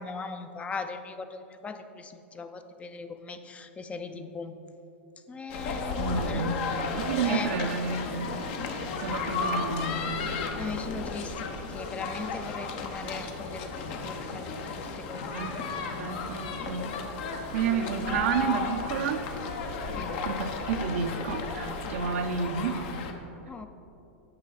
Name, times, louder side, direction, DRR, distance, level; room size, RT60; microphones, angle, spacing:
voice 1, 0.0-4.5 5.3-6.6 7.2-7.5 10.6-15.3 19.9-20.2 23.5-23.7, left 4 dB, 20° left, 9 dB, 0.4 m, -39 dB
sound 1, 5.5-23.1, left 4 dB, 60° left, 0.9 m, -34 dB
voice 2, 6.0-8.3 9.0-10.1 15.3-16.9 17.5-19.2 20.2-22.8, right 6 dB, 80° right, 7 dB, 0.6 m, -31 dB
9.6 x 5.5 x 4.1 m, 2.9 s
hypercardioid pair, 120°, 7 cm